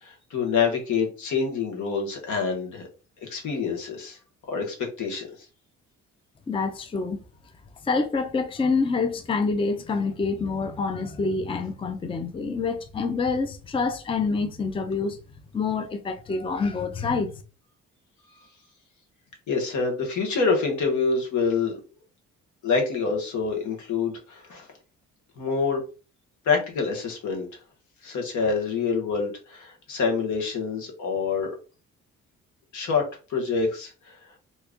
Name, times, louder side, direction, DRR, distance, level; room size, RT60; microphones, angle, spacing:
voice 1, 0.0-2.8 3.2-4.2 4.5-5.3 18.3-18.5 19.5-21.8 22.6-24.7 25.4-25.8 26.4-27.5 28.0-31.5 32.7-33.0 33.3-34.2, left 5 dB, 75° left, 1.3 m, -26 dB
voice 2, 6.5-7.2 7.8-15.2 15.5-17.4, left 4 dB, 20° left, 0.5 m, -27 dB
2.9 x 2.4 x 3.6 m
cardioid pair, 90°, 30 cm